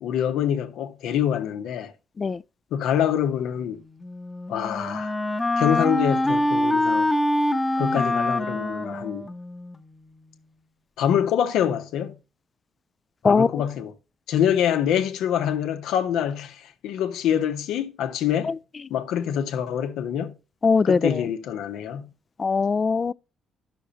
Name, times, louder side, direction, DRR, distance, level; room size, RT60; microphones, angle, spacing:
voice 1, 0.0-1.9 2.7-3.8 4.5-5.2 5.6-7.1 7.7-9.3 11.0-12.2 13.2-13.9 14.3-18.5 18.9-20.3 20.8-22.1, left 9 dB, 85° left, 1.0 m, -25 dB
Wind instrument woodwind instrument, 4.0-9.8, left 1 dB, 15° left, 0.8 m, -25 dB
voice 2, 20.6-21.2 22.4-23.1, left 5 dB, 35° left, 0.3 m, -20 dB
10.0 x 6.3 x 4.1 m
cardioid pair, 90°, 0 cm